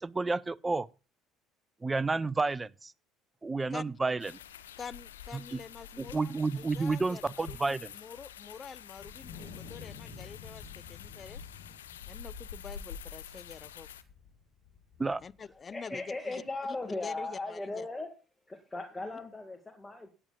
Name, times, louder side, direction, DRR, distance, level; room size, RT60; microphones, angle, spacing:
voice 1, 0.0-0.9 1.8-2.9 3.4-4.3 5.3-5.6 6.0-7.9 15.0-15.2, right 3 dB, 20° right, 0.6 m, -31 dB
sound 1, 4.2-14.0, left 8 dB, 85° left, 0.7 m, -47 dB
voice 2, 4.8-11.4 12.1-13.9 15.2-16.4 17.0-17.9 19.0-19.2, left 6 dB, 35° left, 0.5 m, -47 dB
Wind, 9.0-15.5, left 5 dB, 60° left, 4.5 m, -50 dB
voice 3, 15.7-18.1 18.5-20.1, left 2 dB, 15° left, 2.0 m, -38 dB
16.5 x 8.9 x 2.4 m
hypercardioid pair, 60°, 0 cm